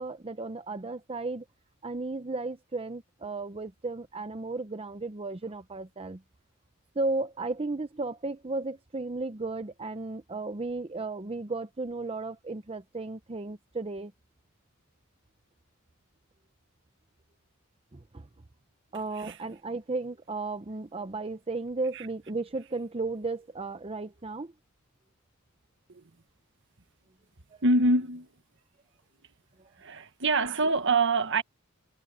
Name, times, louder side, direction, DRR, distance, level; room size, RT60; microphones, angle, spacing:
voice 1, 0.0-1.4 1.8-6.2 6.9-14.1 17.9-18.3 18.9-24.5 27.5-27.6 29.6-29.7, right 3 dB, 30° right, 0.7 m, -34 dB
voice 2, 27.6-28.3 29.8-31.4, right 2 dB, 60° right, 1.6 m, -25 dB
head